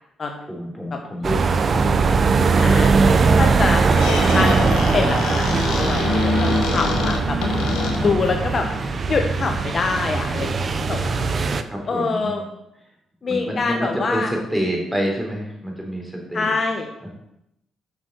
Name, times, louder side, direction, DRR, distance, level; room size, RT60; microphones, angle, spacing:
voice 1, 0.5-2.2 7.9-9.0 11.7-12.4 13.2-16.6 17.0-17.1, equal, 5° right, 0 dB, 3.6 m, -28 dB
sound 1, 1.2-11.6, right 4 dB, 45° right, 0.7 m, -20 dB
voice 2, 2.5-4.6 4.9-7.4 8.0-11.3 11.9-12.4 13.2-14.3 16.3-16.9, left 4 dB, 40° left, 3 dB, 1.1 m, -25 dB
Squeak, 3.7-8.4, left 3 dB, 85° left, 1.7 m, -25 dB
8.1 x 6.3 x 6.5 m, 0.82 s
cardioid pair, 90°, 0 cm